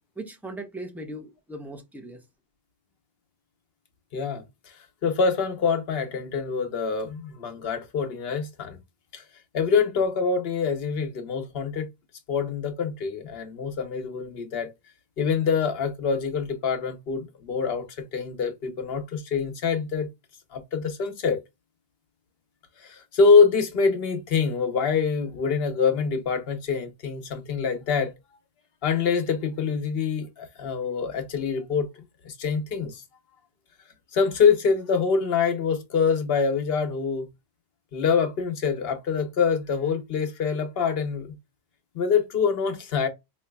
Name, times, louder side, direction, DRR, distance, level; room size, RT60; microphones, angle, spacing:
voice 1, 0.2-2.2, right 1 dB, ahead, 0.4 m, -38 dB
voice 2, 4.1-4.4 5.0-8.8 9.1-9.2 9.5-11.9 12.3-14.7 15.2-17.9 18.1-20.1 20.5-21.4 22.8-28.1 28.8-33.0 34.1-37.2 37.9-41.3 41.9-43.1, left 5 dB, 65° left, 1.0 m, -25 dB
3.9 x 2.8 x 2.2 m
omnidirectional pair, 1.1 m